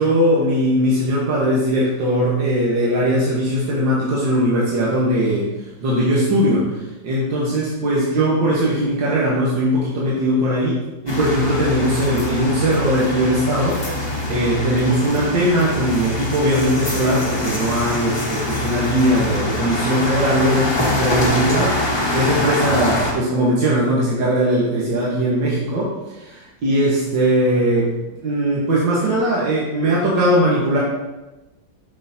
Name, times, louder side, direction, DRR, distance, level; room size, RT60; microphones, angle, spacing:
voice 1, 0.0-5.5 5.8-6.8 7.0-27.9 28.2-30.8, equal, 85° right, -6 dB, 2.0 m, -19 dB
sound 1, 11.1-23.1, left 1 dB, 25° left, 0.6 m, -24 dB
8.2 x 5.7 x 2.8 m, 1.1 s
omnidirectional pair, 1.9 m